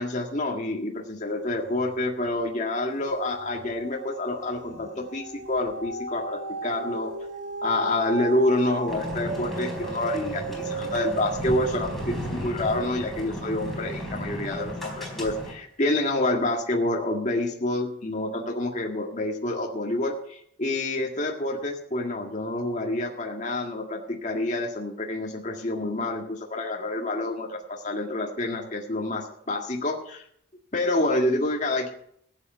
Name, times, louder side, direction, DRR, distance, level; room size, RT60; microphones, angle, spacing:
voice 1, 0.0-7.1 7.6-30.2 30.7-31.9, left 2 dB, 35° left, 0 dB, 1.9 m, -28 dB
sound 1, 1.6-2.1 2.5-15.0 15.5-15.6, right 4 dB, 75° right, 2.0 m, -37 dB
sound 2, 8.9-15.5, equal, ahead, 4.2 m, -34 dB
15.0 x 8.9 x 6.8 m, 0.67 s
head